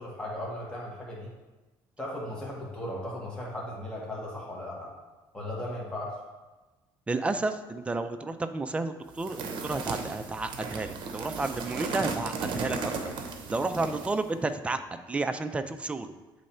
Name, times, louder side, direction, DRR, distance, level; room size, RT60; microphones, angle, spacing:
voice 1, 0.0-1.3 2.0-4.9 5.3-6.1, left 1 dB, 10° left, -5 dB, 1.3 m, -37 dB
voice 2, 7.1-13.1 13.5-16.1, right 3 dB, 15° right, 9 dB, 0.3 m, -31 dB
sound 1, 9.2-14.2, right 4 dB, 55° right, 0.8 m, -35 dB
7.6 x 3.2 x 4.3 m, 1.2 s
cardioid pair, 130°, 9 cm